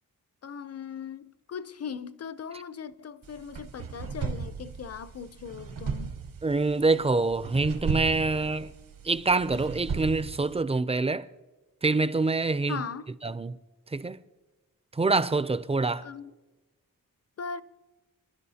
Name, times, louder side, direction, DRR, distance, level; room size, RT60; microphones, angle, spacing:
voice 1, 0.4-6.1 12.7-13.1 16.0-16.3 17.4-17.6, left 6 dB, 45° left, 0.5 m, -39 dB
sound 1, 3.2-10.6, right 5 dB, 65° right, 0.9 m, -36 dB
voice 2, 6.4-8.7 9.0-11.3 11.8-12.8 13.2-13.6 13.9-14.2 14.9-16.1, right 3 dB, 20° right, 0.3 m, -26 dB
27.0 x 11.5 x 2.8 m
wide cardioid pair, 145°, 35 cm